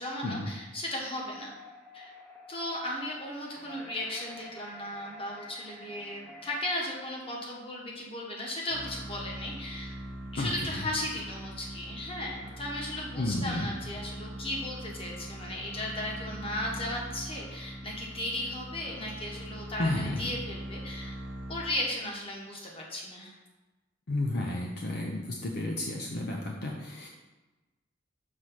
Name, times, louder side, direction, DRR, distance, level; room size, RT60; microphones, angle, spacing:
voice 1, 0.0-1.5 1.9-2.1 2.5-9.9 10.3-21.2 21.5-23.3, left 1 dB, 30° left, -2 dB, 1.3 m, -36 dB
sound 1, 1.3-6.6, left 1 dB, 10° left, 0.7 m, -49 dB
sound 2, 8.7-22.1, right 1 dB, 75° right, 0.8 m, -42 dB
voice 2, 10.4-10.8 13.2-13.7 19.8-20.3 24.1-27.1, left 1 dB, 55° left, 0 dB, 0.6 m, -32 dB
6.4 x 3.2 x 5.6 m, 1.2 s
head